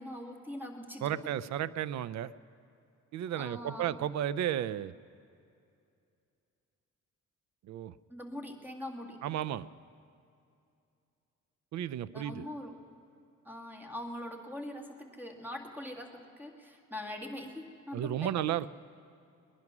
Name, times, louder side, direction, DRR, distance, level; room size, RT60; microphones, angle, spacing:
voice 1, 0.0-1.2 3.4-3.9 8.1-9.2 12.1-12.8 13.5-18.3, left 1 dB, 5° right, 3 dB, 1.8 m, -42 dB
voice 2, 1.0-2.3 3.1-4.9 7.7-7.9 9.2-9.7 11.7-12.5 17.9-18.7, right 11 dB, 65° right, 18 dB, 0.5 m, -33 dB
20.5 x 11.0 x 6.0 m, 2.5 s
cardioid pair, 90°, 30 cm